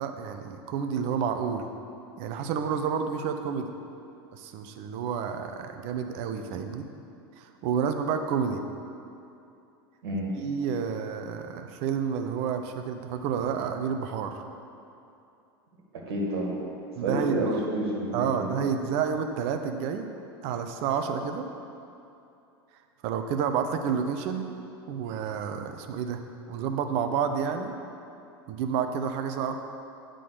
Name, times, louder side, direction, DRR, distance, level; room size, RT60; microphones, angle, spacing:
voice 1, 0.0-1.7 2.2-3.7 4.3-6.9 7.4-8.6 10.4-14.4 17.0-17.6 18.1-20.1 20.4-21.5 23.0-24.6 24.9-26.2 26.5-27.7 28.5-29.5, right 7 dB, 55° right, 6 dB, 0.7 m, -30 dB
voice 2, 10.0-10.3 16.1-16.6 17.0-18.4, right 1 dB, 70° right, -2 dB, 1.8 m, -29 dB
9.6 x 3.8 x 6.7 m, 2.6 s
hypercardioid pair, 90°, 13 cm